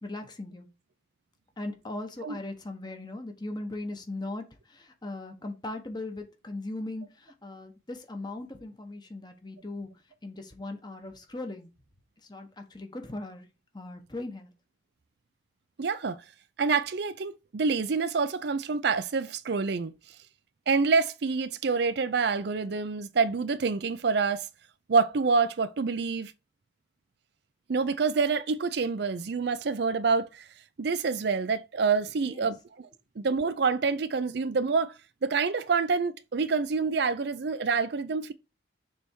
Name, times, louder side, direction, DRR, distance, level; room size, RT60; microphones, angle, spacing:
voice 1, 0.0-0.7 1.6-9.9 10.2-11.7 12.3-13.5 13.7-14.5 32.2-32.5, left 2 dB, 25° left, 1.1 m, -39 dB
voice 2, 15.8-16.2 16.6-19.9 20.7-24.4 24.9-26.3 27.7-30.4 30.8-32.9 33.2-34.9 35.2-38.3, right 4 dB, 60° right, 0.5 m, -27 dB
6.8 x 3.4 x 4.5 m
head